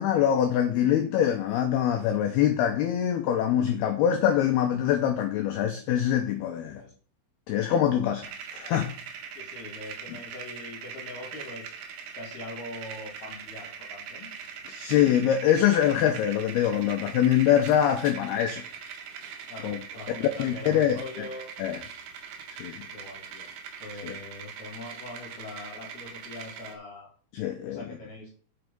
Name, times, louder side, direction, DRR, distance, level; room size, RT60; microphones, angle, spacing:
voice 1, 0.0-6.8 7.5-8.3 8.5-8.9 14.7-18.6 19.6-19.8 20.4-21.0 21.6-21.8 22.6-22.8 24.0-24.1 27.3-27.8, left 10 dB, 85° left, 2.2 m, -24 dB
sound 1, 8.2-26.8, right 7 dB, 70° right, 2.2 m, -42 dB
voice 2, 9.4-11.8 12.1-14.3 19.5-21.5 22.9-23.5 23.8-27.1 27.6-28.4, left 2 dB, 55° left, 3.9 m, -42 dB
8.0 x 7.5 x 5.4 m
omnidirectional pair, 5.9 m